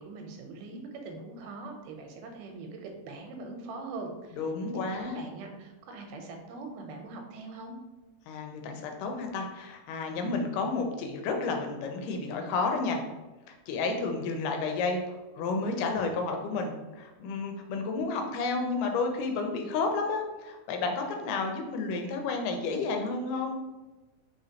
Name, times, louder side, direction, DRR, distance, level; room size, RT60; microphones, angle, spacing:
voice 1, 0.0-4.4 4.7-7.8, right 3 dB, 85° right, 3 dB, 2.3 m, -42 dB
voice 2, 4.4-5.2 8.3-13.0 13.7-23.6, left 3 dB, 85° left, 4 dB, 2.3 m, -31 dB
5.0 x 3.7 x 2.8 m, 1.1 s
omnidirectional pair, 3.7 m